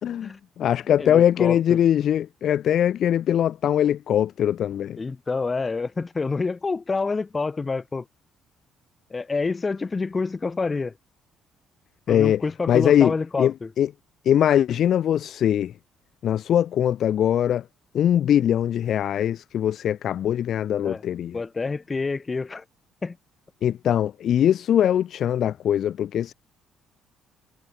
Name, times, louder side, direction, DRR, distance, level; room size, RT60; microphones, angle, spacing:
voice 1, 0.0-5.0 12.1-12.4 12.7-13.9 14.2-15.7 16.2-17.6 17.9-21.4 23.6-26.3, left 10 dB, 60° left, 4.8 m, -21 dB
voice 2, 1.0-1.8 5.0-8.1 9.1-10.9 12.1-13.7 20.8-21.0 21.3-22.6 23.0-23.2, left 4 dB, 30° left, 7.0 m, -27 dB
supercardioid pair, 75°, 0 cm